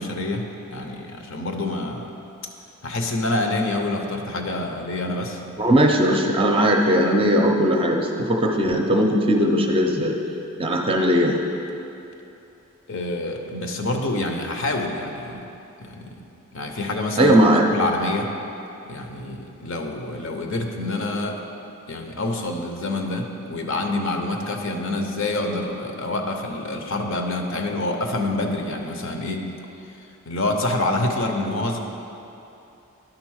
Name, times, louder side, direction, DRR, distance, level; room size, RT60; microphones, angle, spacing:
voice 1, 0.0-2.1 2.8-5.4 12.9-15.5 15.8-16.1 16.5-17.3 17.7-18.3 18.8-21.4 21.9-29.5 30.3-31.8, left 2 dB, 60° left, 3 dB, 0.8 m, -27 dB
voice 2, 5.6-10.2 10.6-11.4 17.2-17.6, equal, 25° right, 1 dB, 0.6 m, -18 dB
11.0 x 4.0 x 6.3 m, 2.8 s
head